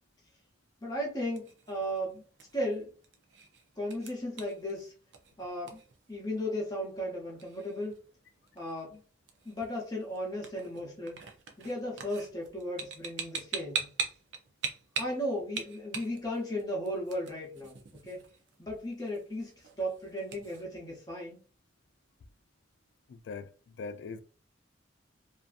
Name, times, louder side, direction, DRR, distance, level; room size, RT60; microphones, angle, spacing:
voice 1, 0.8-2.2 2.5-2.9 3.8-4.9 5.4-5.8 6.1-8.0 8.5-9.0 9.4-11.2 11.6-13.9 15.0-18.3 18.6-19.5 19.8-21.4, equal, 20° left, 0.7 m, -35 dB
sound 1, 1.0-20.7, right 5 dB, 80° right, 0.5 m, -43 dB
voice 2, 23.1-24.2, left 4 dB, 75° left, 0.3 m, -41 dB
2.6 x 2.4 x 2.4 m
head